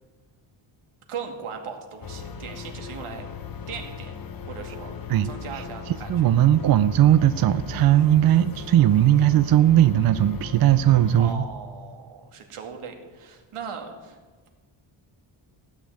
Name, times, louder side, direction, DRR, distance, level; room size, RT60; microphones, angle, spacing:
voice 1, 1.1-3.3 3.7-4.1 4.5-5.0 5.2-6.3 11.2-14.2, right 6 dB, 80° right, 4 dB, 2.3 m, -38 dB
sound 1, 2.0-11.3, left 6 dB, 45° left, 0.9 m, -38 dB
voice 2, 5.1-11.4, right 12 dB, 50° right, 13 dB, 0.4 m, -19 dB
16.0 x 6.6 x 9.5 m, 1.3 s
wide cardioid pair, 175°, 49 cm